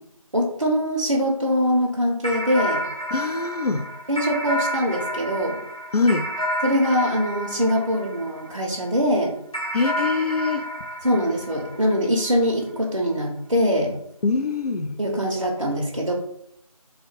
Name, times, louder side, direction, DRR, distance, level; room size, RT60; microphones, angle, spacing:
voice 1, 0.3-2.8 4.1-5.6 6.6-9.3 11.0-14.0 15.0-16.1, equal, 55° right, -2 dB, 0.6 m, -23 dB
sound 1, 2.2-8.8 9.5-12.3, equal, 65° left, 1.1 m, -30 dB
voice 2, 3.1-3.9 5.9-6.3 9.7-10.7 14.2-15.0, left 4 dB, 90° left, 9 dB, 0.4 m, -23 dB
2.7 x 2.1 x 4.0 m, 0.72 s
figure-of-eight pair, 175°, 19 cm